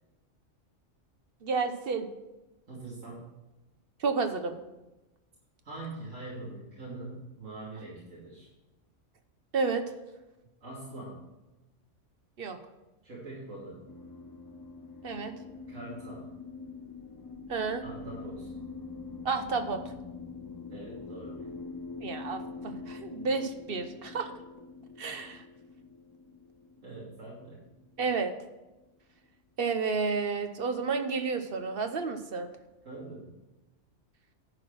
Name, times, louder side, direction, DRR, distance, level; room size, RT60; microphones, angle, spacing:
voice 1, 1.4-2.1 4.0-4.6 9.5-9.8 12.4-12.6 15.0-15.3 17.5-17.8 19.2-19.8 22.0-24.3 25.0-25.4 28.0-28.3 29.6-32.5, right 4 dB, 50° right, 7 dB, 0.9 m, -31 dB
voice 2, 2.7-3.2 5.6-8.5 10.6-11.2 13.0-13.8 15.7-16.3 17.8-18.5 20.7-21.7 26.8-27.6 32.8-33.3, right 2 dB, 80° right, -8 dB, 3.1 m, -43 dB
sound 1, 13.9-28.4, left 4 dB, 30° left, 0.4 m, -44 dB
10.5 x 4.8 x 6.2 m, 1.0 s
omnidirectional pair, 1.3 m